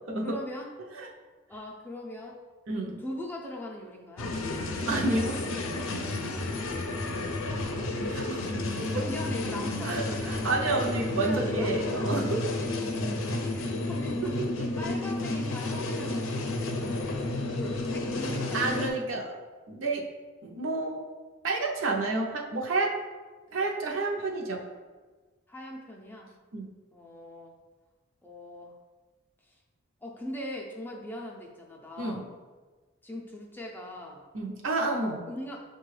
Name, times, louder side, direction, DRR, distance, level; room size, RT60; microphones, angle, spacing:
voice 1, 0.2-0.7 1.5-2.4 3.0-4.4 6.7-7.9 8.2-8.6 8.9-10.4 11.1-11.7 12.8-12.9 13.5-14.3 14.8-16.6 17.5-18.9 25.5-26.3 26.9-27.5 28.2-28.7 29.5-29.6 30.0-32.3 33.0-34.2 35.3-35.6, left 1 dB, 10° left, -1 dB, 0.4 m, -41 dB
voice 2, 2.7-3.0 4.9-5.5 8.1-8.4 8.8-9.1 9.8-12.5 14.4-14.7 18.5-19.4 19.7-20.1 20.4-21.0 21.4-23.0 23.5-24.6 26.5-26.7 32.0-32.2 34.3-35.3, right 2 dB, 75° right, 0 dB, 0.6 m, -30 dB
sound 1, 4.2-18.9, left 2 dB, 80° left, 0.5 m, -31 dB
6.6 x 2.2 x 3.2 m, 1.4 s
head